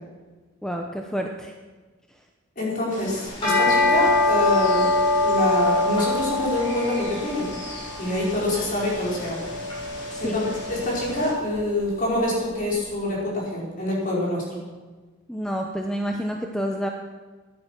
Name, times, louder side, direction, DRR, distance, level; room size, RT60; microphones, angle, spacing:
voice 1, 0.6-1.5 10.1-10.4 15.3-16.9, equal, 5° left, 2 dB, 0.8 m, -29 dB
voice 2, 2.6-4.9 5.2-7.5 8.0-9.5 10.2-14.6, left 1 dB, 40° left, -4 dB, 5.3 m, -26 dB
sound 1, 2.9-11.3, left 1 dB, 60° left, 3.6 m, -39 dB
sound 2, 3.3-12.6, left 2 dB, 25° left, 5.9 m, -25 dB
14.5 x 11.0 x 6.1 m, 1.3 s
head